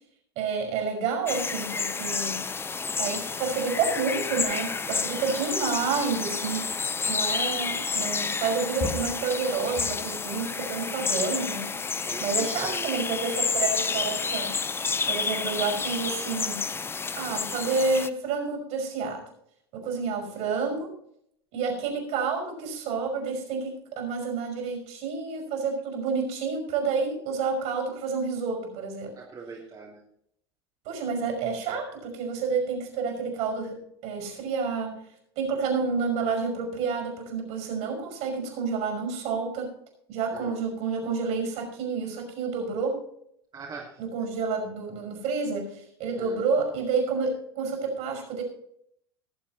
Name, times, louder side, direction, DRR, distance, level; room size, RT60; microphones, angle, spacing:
voice 1, 0.4-2.5 3.0-6.8 7.1-11.7 12.2-14.6 15.1-16.6 17.2-19.2 19.7-20.9 21.5-29.2 30.9-35.0 35.4-39.7 40.1-43.0 44.0-48.4, right 5 dB, 55° right, 4 dB, 5.3 m, -29 dB
sound 1, 1.3-18.1, left 5 dB, 15° left, 0.6 m, -30 dB
sound 2, 8.8-9.2 9.7-11.2, left 3 dB, 35° left, 2.2 m, -37 dB
voice 2, 12.0-12.9 29.2-30.0 40.3-40.6 43.5-43.9 46.2-46.4, right 4 dB, 35° right, -4 dB, 2.9 m, -41 dB
19.0 x 7.5 x 4.1 m, 0.71 s
hypercardioid pair, 85°, 13 cm